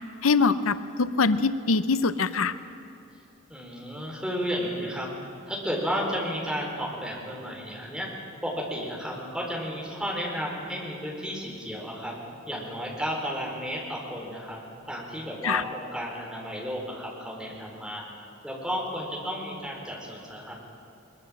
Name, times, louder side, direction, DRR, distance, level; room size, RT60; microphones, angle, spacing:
voice 1, 0.2-2.5 15.4-15.6, left 4 dB, 85° left, 13 dB, 0.7 m, -23 dB
voice 2, 3.5-5.1 5.5-8.1 8.4-12.1 12.5-14.6 14.9-18.0 18.4-20.5, equal, 5° right, -2 dB, 4.3 m, -33 dB
22.0 x 21.5 x 7.6 m, 2.8 s
head